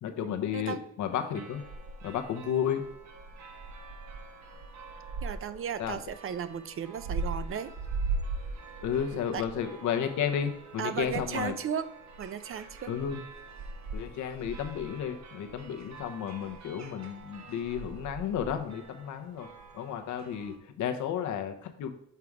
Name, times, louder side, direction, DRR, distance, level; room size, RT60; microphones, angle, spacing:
voice 1, 0.0-1.6 2.0-2.8 5.8-6.0 8.8-11.5 12.9-13.2 13.9-19.5 19.7-21.9, left 8 dB, 75° left, 6 dB, 0.9 m, -32 dB
sound 1, 1.1-20.6, right 3 dB, 65° right, 1.1 m, -41 dB
voice 2, 5.2-7.7 9.3-9.4 10.8-11.9 12.2-12.9, right 8 dB, 45° right, 13 dB, 0.5 m, -35 dB
6.8 x 3.6 x 4.7 m, 0.73 s
cardioid pair, 90°, 30 cm